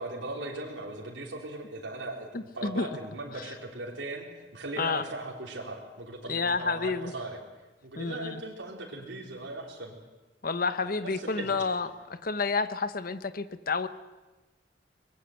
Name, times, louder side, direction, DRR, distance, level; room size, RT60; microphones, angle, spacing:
voice 1, 0.0-4.3 4.5-7.4 7.8-10.0 10.8-11.6, right 2 dB, 85° right, -2 dB, 3.9 m, -39 dB
voice 2, 2.3-2.9 3.3-3.4 4.8-5.0 6.3-7.1 8.0-8.4 10.4-13.9, left 4 dB, 50° left, 12 dB, 1.0 m, -30 dB
24.0 x 21.0 x 8.0 m, 1.1 s
head